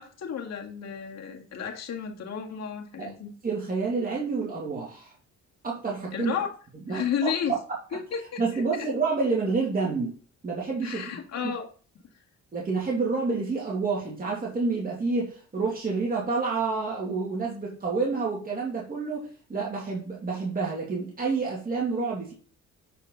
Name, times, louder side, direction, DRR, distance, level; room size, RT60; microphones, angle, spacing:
voice 1, 0.0-3.3 6.1-6.5 6.9-7.5 7.9-8.6 10.8-11.7, left 7 dB, 60° left, 0 dB, 2.0 m, -32 dB
voice 2, 3.4-5.1 5.6-6.3 6.9-7.6 8.4-10.2 10.4-11.0 11.4-11.5 12.5-22.3, right 4 dB, 30° right, -3 dB, 2.7 m, -28 dB
8.4 x 5.0 x 4.0 m, 0.40 s
cardioid pair, 90°, 30 cm